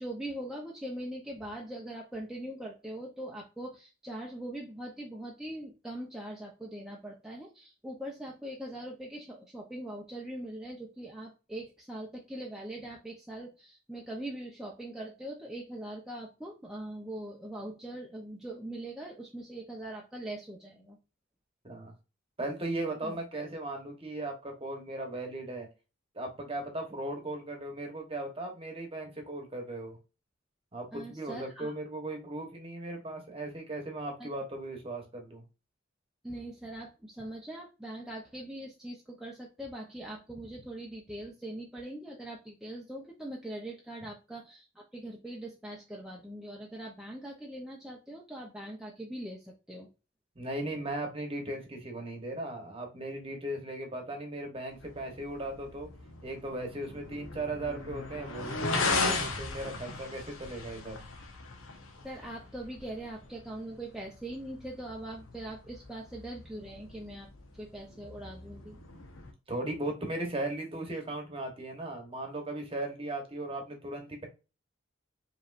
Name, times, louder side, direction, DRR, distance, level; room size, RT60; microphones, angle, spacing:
voice 1, 0.0-21.0 23.0-23.2 30.9-31.7 34.2-34.3 36.2-49.9 62.0-67.3 67.5-68.8, right 1 dB, ahead, -3 dB, 0.6 m, -42 dB
voice 2, 22.4-25.7 26.1-30.0 30.7-35.4 50.4-55.9 56.2-61.0 69.5-74.3, right 1 dB, 25° right, 3 dB, 1.1 m, -37 dB
sound 1, 54.7-69.3, left 3 dB, 80° left, 1.1 m, -38 dB
5.2 x 3.1 x 2.5 m, 0.30 s
head